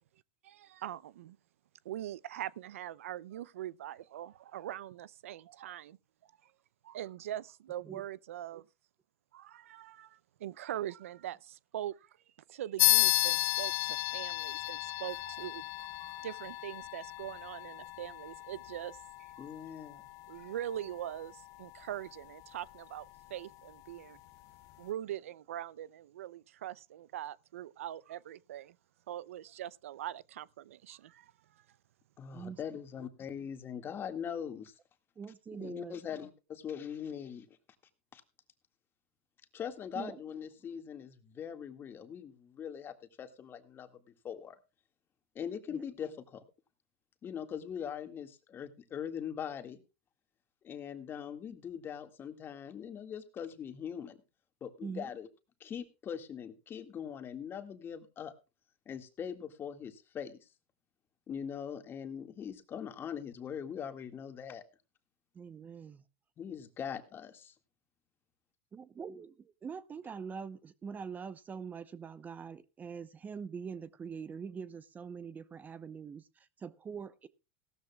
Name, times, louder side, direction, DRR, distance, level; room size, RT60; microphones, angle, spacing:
voice 1, 0.4-1.4 1.8-6.0 6.4-6.5 6.8-8.7 9.3-12.2 12.5-19.5 20.3-24.2 24.8-28.8 29.1-31.6, right 12 dB, 85° right, 0.5 m, -42 dB
sound 1, 12.8-22.8, left 21 dB, 50° left, 0.6 m, -34 dB
voice 2, 19.4-20.1 32.2-34.7 35.5-37.5 38.1-38.2 39.5-43.9 44.2-44.6 45.4-46.4 47.2-49.8 50.6-54.2 54.6-55.3 55.6-58.3 58.9-60.4 61.3-64.6 66.4-67.5, left 8 dB, 30° left, 1.9 m, -41 dB
voice 3, 35.2-36.0 39.9-40.2 45.7-45.8 54.8-55.1 65.3-66.0 68.7-77.3, right 6 dB, 25° right, 0.8 m, -44 dB
17.5 x 13.5 x 2.3 m
supercardioid pair, 115°, 7 cm